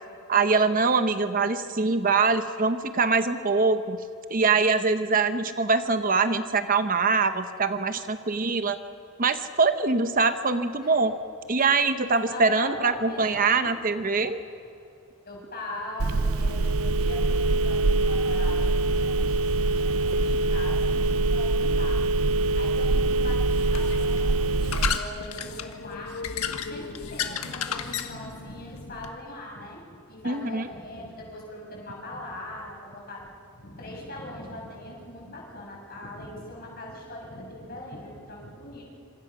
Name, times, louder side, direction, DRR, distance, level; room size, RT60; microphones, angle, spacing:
voice 1, 0.3-4.0 4.3-8.8 9.2-11.1 11.5-14.4 30.2-30.7, right 4 dB, 40° right, 10 dB, 0.8 m, -23 dB
voice 2, 11.9-13.7 14.2-14.3 15.2-22.0 22.3-24.4 24.7-29.8 30.1-38.8, left 1 dB, 45° left, -2 dB, 6.8 m, -41 dB
Telephone, 16.0-25.0, right 2 dB, 75° right, 0.6 m, -24 dB
sound 1, 22.2-29.1, left 6 dB, 85° left, 1.5 m, -34 dB
27.0 x 26.5 x 6.1 m, 2.6 s
head